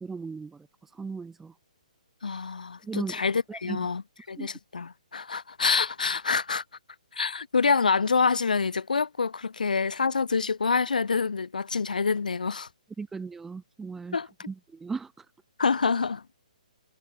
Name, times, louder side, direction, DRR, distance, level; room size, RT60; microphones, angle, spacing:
voice 1, 0.0-0.7 0.9-1.5 2.8-3.9 4.4-4.5 13.0-14.2 14.5-15.3, right 4 dB, 5° right, 1.7 m, -37 dB
voice 2, 2.2-4.0 4.3-6.6 7.1-12.7 14.1-14.5 15.6-16.2, left 5 dB, 85° left, 2.1 m, -26 dB
hypercardioid pair, 145°, 4 cm